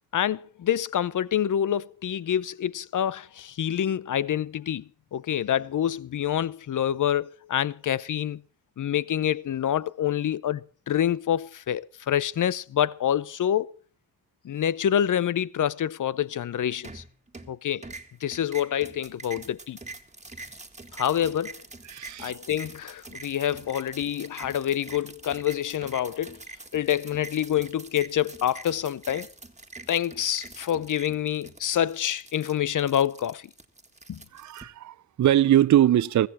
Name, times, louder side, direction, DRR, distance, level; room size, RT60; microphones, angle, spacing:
voice 1, 0.1-4.8 5.1-8.4 8.8-13.7 14.4-17.0 17.5-17.8 18.2-19.8 20.9-21.6 22.2-26.4 26.7-29.3 29.9-33.5 34.1-34.2, left 10 dB, 55° left, 0.7 m, -27 dB
sound 1, 16.8-17.5 17.8-34.6, right 3 dB, 20° right, 1.8 m, -44 dB
voice 2, 21.9-22.3 34.3-36.3, right 12 dB, 50° right, 0.6 m, -21 dB
15.0 x 14.5 x 4.2 m
cardioid pair, 60°, 37 cm